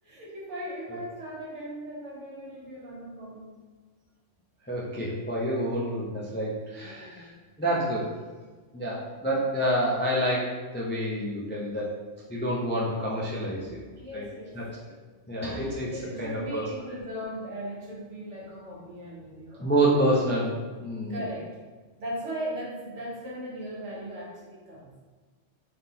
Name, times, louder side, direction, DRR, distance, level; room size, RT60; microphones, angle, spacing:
voice 1, 0.0-3.6 6.8-7.3 14.0-14.5 14.8-15.0 15.8-19.6 21.1-21.6 22.0-24.9, equal, 70° right, -5 dB, 1.4 m, -38 dB
voice 2, 4.7-7.3 7.6-8.1 8.7-12.0 12.3-13.8 14.1-14.2 14.5-14.8 15.3-16.7 19.6-21.2, right 1 dB, 15° left, -5 dB, 0.3 m, -28 dB
3.9 x 3.5 x 2.8 m, 1.4 s
omnidirectional pair, 1.3 m